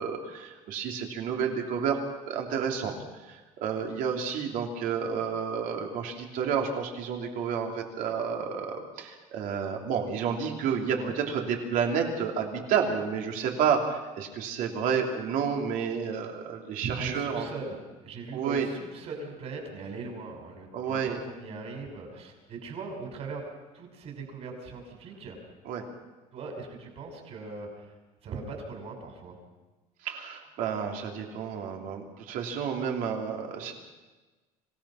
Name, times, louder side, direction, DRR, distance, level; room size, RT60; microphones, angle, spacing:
voice 1, 0.0-3.0 3.3-17.5 18.3-18.7 20.7-21.2 25.6-25.8 30.0-33.7, right 7 dB, 60° right, 2 dB, 3.3 m, -30 dB
voice 2, 10.8-11.2 17.0-23.4 23.7-25.4 26.3-27.9 28.2-29.4, right 4 dB, 45° right, 2 dB, 5.8 m, -40 dB
26.0 x 17.5 x 5.8 m, 1.2 s
cardioid pair, 160°, 16 cm